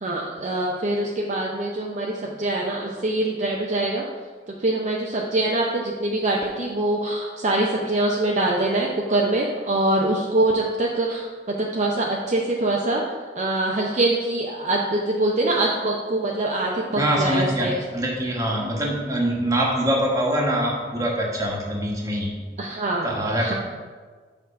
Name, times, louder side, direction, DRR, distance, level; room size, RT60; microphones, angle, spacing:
voice 1, 0.0-4.0 4.6-13.0 13.3-17.7 22.6-23.1 23.4-23.5, right 2 dB, 40° right, -2 dB, 0.6 m, -24 dB
voice 2, 16.9-17.7 17.9-22.3 23.0-23.5, right 1 dB, 20° right, -2 dB, 1.3 m, -24 dB
6.5 x 3.8 x 5.6 m, 1.5 s
head